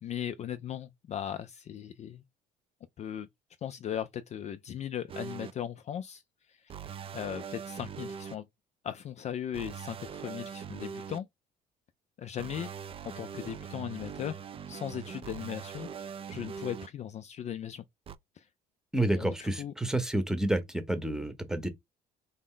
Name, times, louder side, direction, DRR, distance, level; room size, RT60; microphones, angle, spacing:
voice 1, 0.0-2.2 3.0-3.3 3.6-6.2 6.5-6.6 7.1-8.5 8.8-11.3 12.2-12.7 13.2-14.4 14.7-17.8 18.4-18.5 19.2-19.7, left 9 dB, 45° left, 0.4 m, -38 dB
sound 1, 5.1-5.5 6.7-8.3 9.5-11.2 12.4-16.9 18.1-18.2, right 7 dB, 35° right, 0.4 m, -42 dB
voice 2, 18.9-21.7, right 1 dB, 5° right, 0.9 m, -29 dB
4.2 x 2.0 x 3.7 m
cardioid pair, 110°, 17 cm